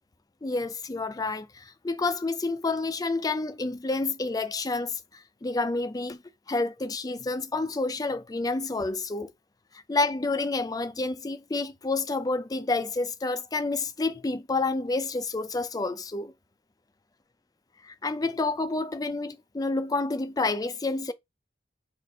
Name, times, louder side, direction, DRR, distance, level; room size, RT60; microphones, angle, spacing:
voice 1, 0.4-6.2 6.5-9.3 9.9-16.3 17.8-21.1, left 3 dB, 20° left, 0.5 m, -29 dB
4.1 x 2.6 x 4.6 m
head